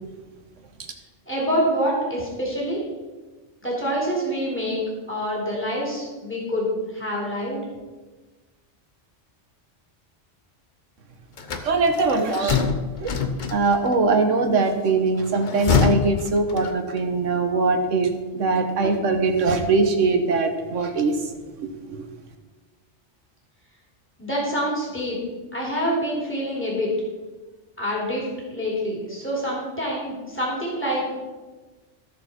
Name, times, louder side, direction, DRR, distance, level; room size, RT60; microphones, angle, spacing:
voice 1, 1.3-2.8 3.6-4.8 5.1-6.7 6.9-7.6 24.2-25.2 25.5-26.9 27.8-31.0, equal, 10° left, -4 dB, 3.0 m, -26 dB
sound 1, 11.4-13.9 15.3-17.1, left 5 dB, 45° left, 0.8 m, -25 dB
voice 2, 11.6-12.7 13.0-13.1 13.5-21.1 21.9-22.0, right 3 dB, 85° right, 6 dB, 1.5 m, -21 dB
14.5 x 6.8 x 4.3 m, 1.3 s
omnidirectional pair, 1.2 m